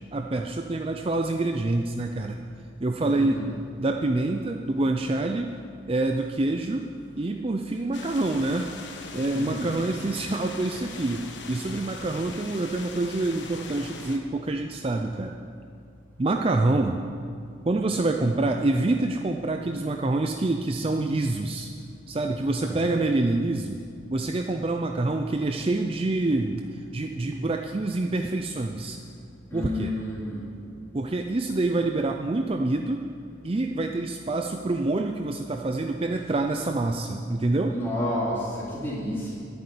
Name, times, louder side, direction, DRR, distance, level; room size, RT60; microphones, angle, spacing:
voice 1, 0.1-2.4 2.8-3.5 3.8-5.5 5.9-6.9 7.2-8.7 9.1-15.4 16.2-17.0 17.7-21.7 22.1-23.8 24.1-29.0 29.5-29.9 30.9-33.1 33.4-37.8, right 2 dB, 30° right, 4 dB, 0.5 m, -26 dB
sound 1, 7.9-14.2, left 4 dB, 65° left, 1.2 m, -41 dB
voice 2, 9.3-9.7 22.6-22.9 29.5-30.5 37.7-39.3, left 1 dB, 10° left, -8 dB, 4.0 m, -30 dB
10.5 x 8.6 x 9.8 m, 2.3 s
head